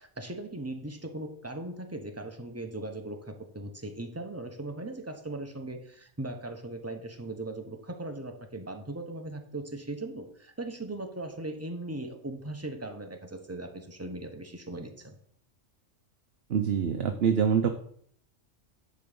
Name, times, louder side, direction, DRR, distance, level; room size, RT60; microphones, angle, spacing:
voice 1, 0.0-15.2, right 2 dB, 15° right, 5 dB, 0.9 m, -39 dB
voice 2, 16.5-17.7, right 7 dB, 60° right, 6 dB, 0.9 m, -25 dB
10.5 x 3.9 x 6.8 m, 0.63 s
omnidirectional pair, 1.3 m